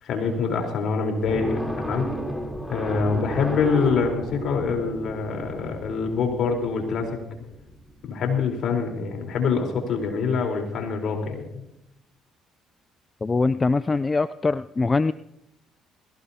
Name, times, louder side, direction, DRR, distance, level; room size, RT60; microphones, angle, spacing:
voice 1, 0.0-2.1 2.7-7.2 8.0-11.6, left 5 dB, 65° left, 2 dB, 4.0 m, -25 dB
sound 1, 1.3-8.0, equal, 5° left, 3.5 m, -34 dB
voice 2, 13.2-15.1, left 3 dB, 30° left, 15 dB, 0.4 m, -22 dB
21.5 x 17.5 x 2.8 m, 0.83 s
supercardioid pair, 65°, 0 cm